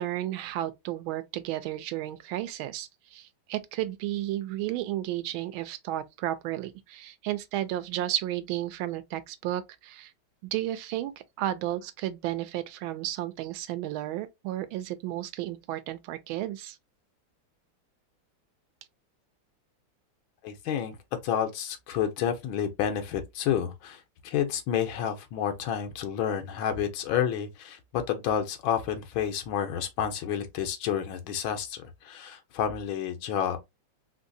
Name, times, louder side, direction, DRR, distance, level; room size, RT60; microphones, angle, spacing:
voice 1, 0.0-10.1 10.5-16.8, right 13 dB, 85° right, 1.4 m, -33 dB
voice 2, 20.4-21.0 21.2-33.6, left 9 dB, 85° left, 1.5 m, -30 dB
3.8 x 2.7 x 2.6 m
omnidirectional pair, 2.2 m